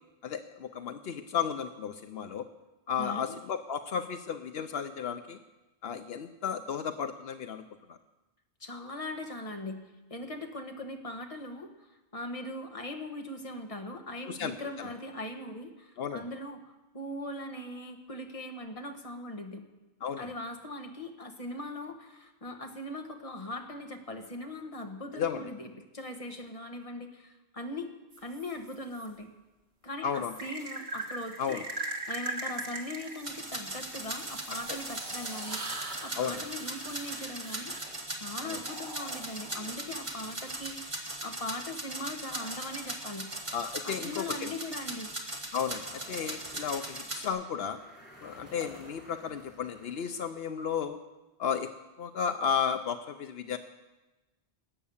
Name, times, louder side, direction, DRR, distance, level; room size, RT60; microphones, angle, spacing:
voice 1, 0.2-2.5 2.9-5.4 5.8-7.6 7.9-8.0 14.3-14.5 16.0-16.2 20.0-20.3 25.2-25.4 30.0-30.3 31.4-31.6 36.2-36.4 38.4-38.6 43.5-44.5 45.5-47.8 48.2-51.0 51.4-51.7 52.0-53.6, left 7 dB, 75° left, 9 dB, 0.9 m, -33 dB
voice 2, 3.0-3.4 8.6-9.8 10.1-19.6 20.2-27.9 28.2-29.3 29.8-31.6 32.1-37.7 38.1-43.3 43.8-45.1, left 1 dB, 35° left, 5 dB, 1.5 m, -40 dB
sound 1, 28.1-29.1 30.4-41.0 42.4-44.2, right 2 dB, 80° right, 1.8 m, -42 dB
sound 2, 33.2-47.3, right 1 dB, 30° right, 1.7 m, -39 dB
sound 3, 45.6-50.8, equal, 10° left, 2.9 m, -53 dB
19.0 x 8.5 x 7.1 m, 1.1 s
omnidirectional pair, 1.0 m